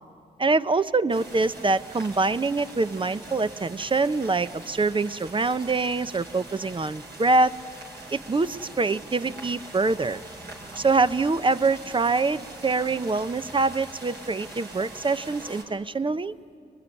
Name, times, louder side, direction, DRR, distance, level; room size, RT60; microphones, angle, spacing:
voice 1, 0.4-7.5 8.1-10.2 10.8-16.3, right 3 dB, 30° right, 14 dB, 0.8 m, -24 dB
sound 1, 1.1-15.6, right 2 dB, 70° right, 5.3 m, -43 dB
23.5 x 20.5 x 10.0 m, 2.2 s
supercardioid pair, 50°, 18 cm